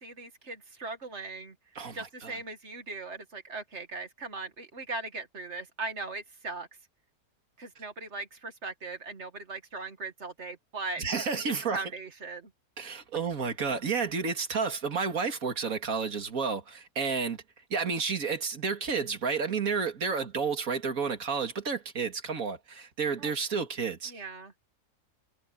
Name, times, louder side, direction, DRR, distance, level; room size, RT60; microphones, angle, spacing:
voice 1, 0.0-1.6 1.9-6.7 7.6-11.0 11.3-12.5 20.1-20.3 23.2-23.3 24.1-24.5, right 3 dB, 50° right, 2.1 m, -39 dB
voice 2, 1.8-2.4 11.0-11.8 12.8-17.4 17.7-24.1, right 5 dB, 65° right, 2.5 m, -31 dB
omnidirectional pair, 1.6 m